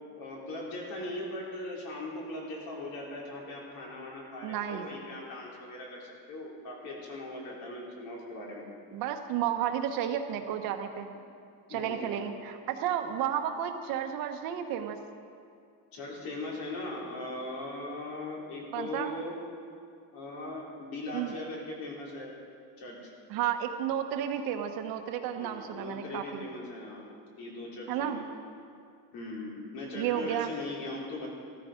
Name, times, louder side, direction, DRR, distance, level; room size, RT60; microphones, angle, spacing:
voice 1, 0.2-8.7 11.1-11.2 11.7-12.2 15.9-19.3 20.1-22.3 22.8-23.1 25.3-27.1 27.4-28.2 29.1-31.3, left 2 dB, 55° left, -3 dB, 4.1 m, -39 dB
voice 2, 4.4-4.9 8.9-11.1 11.7-15.0 18.7-19.1 21.1-21.4 23.3-26.5 27.9-28.2 29.9-30.5, right 10 dB, 60° right, 6 dB, 1.2 m, -32 dB
15.0 x 14.0 x 5.1 m, 2.3 s
cardioid pair, 160°, 40 cm